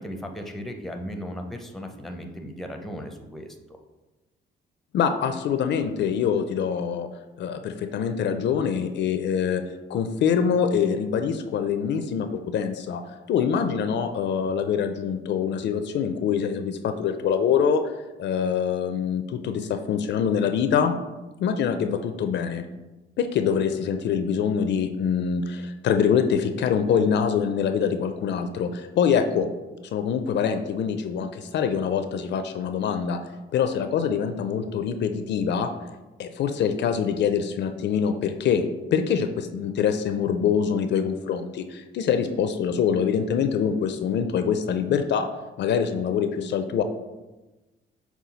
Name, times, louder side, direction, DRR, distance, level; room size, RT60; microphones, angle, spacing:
voice 1, 0.0-3.8, equal, ahead, 4 dB, 0.5 m, -36 dB
voice 2, 4.9-7.1 7.4-9.6 9.9-13.0 13.3-17.9 18.2-20.9 21.4-22.6 23.2-29.5 29.9-33.2 33.5-35.7 36.2-38.6 38.9-45.3 45.6-46.8, left 7 dB, 65° left, 8 dB, 0.4 m, -24 dB
5.6 x 2.4 x 3.9 m, 1.1 s
cardioid pair, 90°, 20 cm